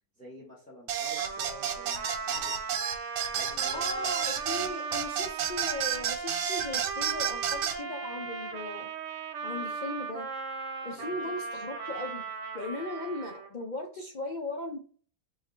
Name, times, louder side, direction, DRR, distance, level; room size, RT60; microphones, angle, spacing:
voice 1, 0.2-2.6 3.3-3.9 4.2-4.4 11.0-11.3, left 2 dB, 5° left, -3 dB, 1.0 m, -49 dB
sound 1, 0.9-7.8, right 9 dB, 85° right, 1.1 m, -31 dB
Trumpet, 1.2-13.6, right 5 dB, 60° right, 1.1 m, -37 dB
voice 2, 3.7-8.9 9.4-10.3 10.8-12.3 12.5-14.8, left 2 dB, 60° left, 1 dB, 0.5 m, -37 dB
4.8 x 2.7 x 3.2 m, 0.43 s
omnidirectional pair, 1.5 m